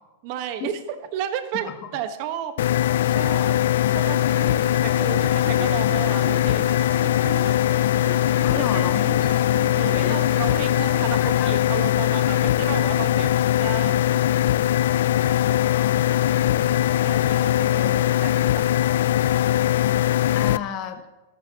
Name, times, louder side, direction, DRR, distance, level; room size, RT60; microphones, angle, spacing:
voice 1, 0.2-0.8 1.1-2.5 2.9-3.6 3.9-6.8 7.4-7.5 7.9-8.0 8.5-8.9 9.7-14.2 15.3-15.6 16.0-17.9 18.2-18.7, right 10 dB, 45° right, 8 dB, 1.3 m, -33 dB
sound 1, 2.6-20.6, left 12 dB, 75° left, 0.3 m, -21 dB
sound 2, 3.9-11.7, right 6 dB, 75° right, 1.7 m, -39 dB
voice 2, 8.4-9.6 9.9-10.2 10.9-11.6 15.4-16.8 17.5-18.0 20.3-21.0, left 9 dB, 35° left, 7 dB, 1.1 m, -34 dB
13.5 x 13.0 x 3.0 m, 1.1 s
supercardioid pair, 145°, 0 cm